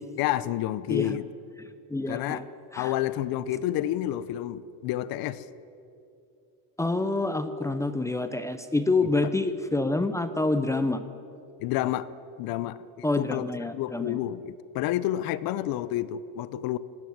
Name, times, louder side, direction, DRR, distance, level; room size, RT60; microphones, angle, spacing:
voice 1, 0.2-1.2 2.1-2.5 2.8-5.4 9.0-9.1 11.6-12.1 12.4-13.4 13.7-16.8, left 13 dB, 55° left, 16 dB, 0.9 m, -29 dB
voice 2, 1.9-2.4 2.7-2.9 6.8-11.0 13.0-14.2, left 2 dB, 5° left, 10 dB, 0.6 m, -27 dB
20.0 x 16.5 x 9.5 m, 2.7 s
cardioid pair, 155°, 43 cm